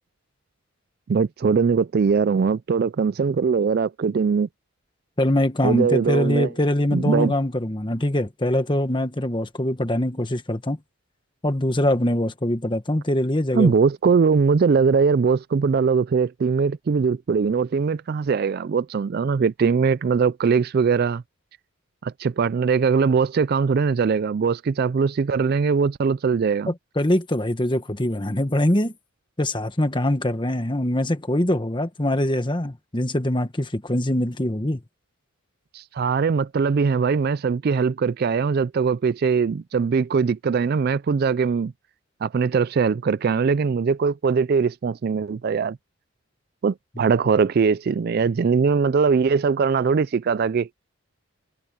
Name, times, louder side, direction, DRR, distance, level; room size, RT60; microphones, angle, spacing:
voice 1, 1.1-4.5 5.6-6.5 6.9-7.3 13.5-21.2 22.0-26.7 35.7-41.7 42.2-45.8 46.6-50.7, right 5 dB, 45° right, 0.3 m, -21 dB
voice 2, 5.2-10.8 11.4-13.7 26.7-28.9 29.4-34.8, left 1 dB, 20° left, 1.4 m, -23 dB
head